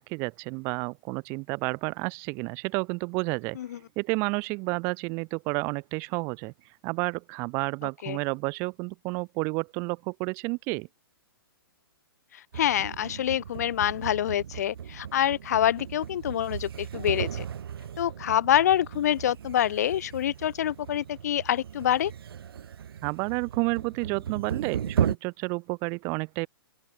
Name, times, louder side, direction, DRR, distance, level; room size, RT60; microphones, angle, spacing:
voice 1, 0.0-3.6 4.0-6.5 6.8-10.9 23.0-26.5, right 29 dB, 20° right, 0.8 m, -30 dB
voice 2, 12.3-17.5 18.0-22.1, left 11 dB, 45° left, 0.5 m, -26 dB
sound 1, 12.5-25.2, right 8 dB, 75° right, 0.9 m, -36 dB
open air
hypercardioid pair, 170°, 13 cm